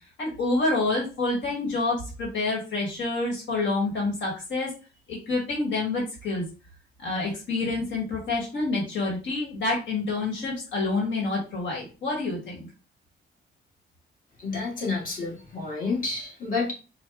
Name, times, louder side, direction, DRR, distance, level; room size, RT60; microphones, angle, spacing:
voice 1, 0.2-4.7 5.1-6.4 7.0-12.7, left 3 dB, 80° left, -2 dB, 1.4 m, -28 dB
voice 2, 14.4-16.7, left 4 dB, 45° left, -3 dB, 1.7 m, -29 dB
4.3 x 2.2 x 3.4 m, 0.33 s
cardioid pair, 115°, 19 cm